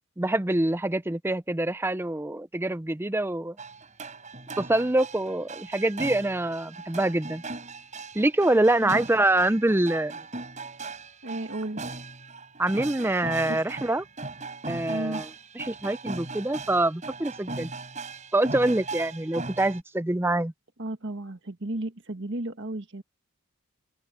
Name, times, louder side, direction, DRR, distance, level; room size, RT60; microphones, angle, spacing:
voice 1, 0.0-3.6 4.6-7.4 8.1-10.1 12.6-14.1 14.7-15.3 15.6-17.7 18.3-20.5, right 1 dB, 10° right, 0.5 m, -25 dB
sound 1, 3.6-19.8, right 3 dB, 30° right, 6.4 m, -39 dB
voice 2, 11.2-11.8 13.4-13.6 14.9-15.2 20.8-23.0, right 1 dB, 55° right, 1.6 m, -34 dB
open air
head